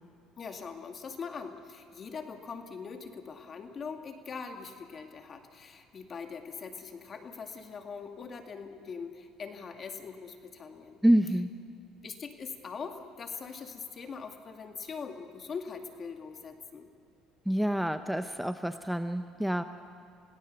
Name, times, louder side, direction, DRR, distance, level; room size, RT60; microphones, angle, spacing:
voice 1, 0.4-11.0 12.0-16.9, left 5 dB, 40° left, 5 dB, 2.3 m, -42 dB
voice 2, 11.0-11.5 17.5-19.6, right 1 dB, 5° right, 9 dB, 0.7 m, -27 dB
28.5 x 17.5 x 6.8 m, 2.4 s
supercardioid pair, 95°, 0 cm